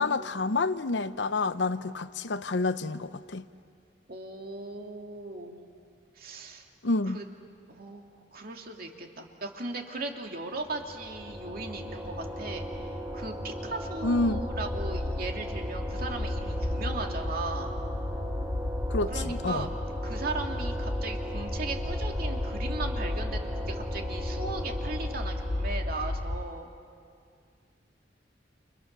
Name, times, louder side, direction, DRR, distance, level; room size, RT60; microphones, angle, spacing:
voice 1, 0.0-3.5 6.8-7.2 14.0-14.4 18.9-19.7, left 3 dB, 75° left, 0.8 m, -28 dB
voice 2, 4.1-5.6 6.2-6.7 7.1-7.3 7.7-17.8 19.1-19.8 20.0-26.7, right 3 dB, 55° right, 2.6 m, -38 dB
sound 1, 10.6-26.5, equal, 15° right, 2.4 m, -37 dB
sound 2, 14.2-26.4, left 1 dB, 30° left, 0.6 m, -34 dB
30.0 x 29.5 x 6.8 m
head